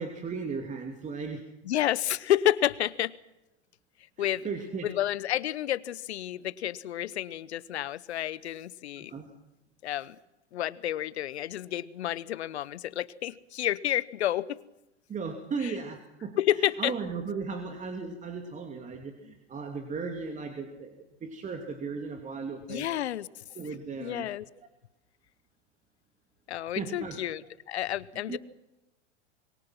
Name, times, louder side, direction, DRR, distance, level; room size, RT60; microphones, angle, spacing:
voice 1, 0.0-1.5 4.2-4.9 9.0-9.3 15.1-20.9 21.2-22.9 23.5-24.3 26.8-27.2 28.3-28.4, right 5 dB, 20° right, 5 dB, 2.7 m, -36 dB
voice 2, 1.6-3.1 4.2-4.5 4.8-9.1 9.8-10.2 10.5-14.6 15.6-15.7 16.4-16.9 22.7-23.3 24.0-24.4 26.5-28.4, left 12 dB, 70° left, 19 dB, 1.0 m, -30 dB
26.0 x 23.0 x 6.0 m, 0.95 s
hypercardioid pair, 105°, 35 cm